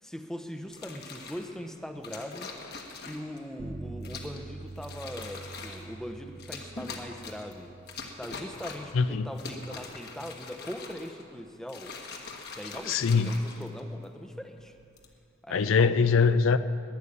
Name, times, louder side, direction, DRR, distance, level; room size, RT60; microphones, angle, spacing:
voice 1, 0.0-2.5 3.1-7.8 8.2-11.9 12.6-14.7 15.4-16.0, equal, 5° left, 6 dB, 0.7 m, -41 dB
sound 1, 0.7-1.5 2.0-3.4 4.0-4.4 4.8-5.9 6.4-7.5 7.9-9.0 9.3-11.2 11.6-14.0 14.8-15.1, left 4 dB, 50° left, 1.4 m, -42 dB
Bass guitar, 3.6-9.8, right 3 dB, 55° right, 0.9 m, -45 dB
voice 2, 8.9-9.3 12.9-13.4 15.5-16.6, left 5 dB, 75° left, 13 dB, 0.4 m, -23 dB
11.5 x 10.0 x 9.8 m, 2.6 s
head